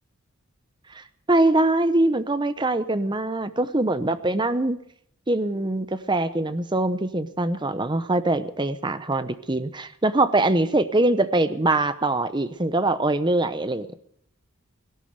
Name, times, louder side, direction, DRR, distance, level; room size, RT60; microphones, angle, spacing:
voice 1, 0.9-4.8 5.3-13.9, right 2 dB, 20° right, 12 dB, 0.8 m, -23 dB
17.5 x 12.0 x 6.7 m, 0.68 s
head